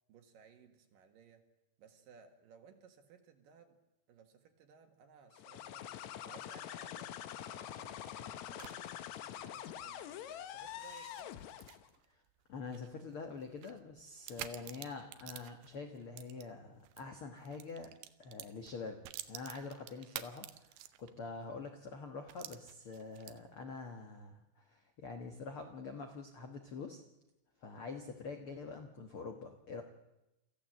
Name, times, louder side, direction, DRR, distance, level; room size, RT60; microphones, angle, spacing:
voice 1, 0.1-1.4 1.8-3.8 4.1-5.9 6.2-9.0 9.3-11.3, right 6 dB, 65° right, 6 dB, 3.1 m, -60 dB
sound 1, 5.3-11.9, left 11 dB, 90° left, 1.6 m, -45 dB
sound 2, 7.8-17.1 17.4-21.3 21.6-21.7 22.3-23.6, right 14 dB, 80° right, 2.8 m, -51 dB
voice 2, 12.5-17.9 18.2-19.0 19.2-27.0 27.6-29.8, left 4 dB, 65° left, 4 dB, 1.3 m, -46 dB
25.0 x 14.5 x 7.6 m, 0.94 s
omnidirectional pair, 4.6 m